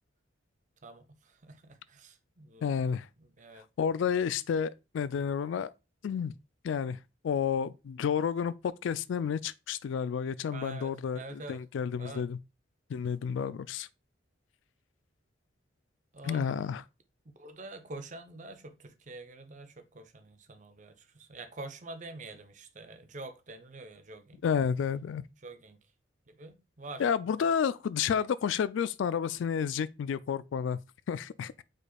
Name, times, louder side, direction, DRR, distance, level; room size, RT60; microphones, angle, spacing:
voice 1, 0.8-2.6 3.4-3.6 10.5-11.6 12.0-12.2 16.1-16.5 17.4-24.4 25.4-25.8 26.3-27.1, right 2 dB, 40° right, 0.6 m, -46 dB
voice 2, 2.6-3.1 3.8-5.7 6.0-6.3 6.6-12.4 12.9-13.9 16.2-16.8 24.4-25.2 27.0-30.8 31.1-31.6, left 7 dB, 75° left, 0.3 m, -31 dB
5.0 x 4.2 x 2.3 m
head